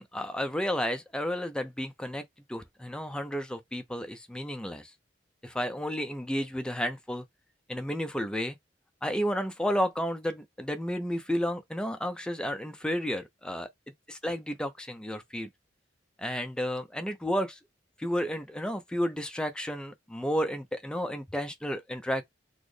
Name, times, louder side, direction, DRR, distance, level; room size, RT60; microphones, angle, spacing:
voice 1, 0.0-2.2 2.5-4.9 5.4-7.2 7.7-8.6 9.0-13.7 14.1-15.5 16.2-17.6 18.0-22.2, equal, 5° left, 0.5 m, -32 dB
4.1 x 2.1 x 3.2 m
head